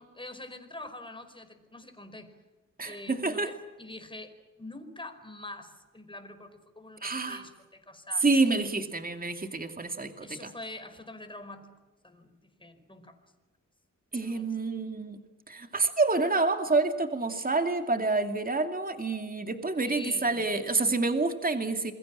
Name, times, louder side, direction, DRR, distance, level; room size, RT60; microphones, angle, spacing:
voice 1, 0.0-2.4 2.8-8.3 10.2-11.7 12.0-13.2 14.2-14.6 19.8-20.4, left 2 dB, 15° left, 7 dB, 4.8 m, -45 dB
voice 2, 2.8-3.5 7.0-7.4 8.2-10.5 14.1-15.2 15.5-21.9, right 3 dB, 25° right, 6 dB, 2.5 m, -28 dB
28.0 x 22.0 x 7.5 m, 1.2 s
cardioid pair, 75°, 32 cm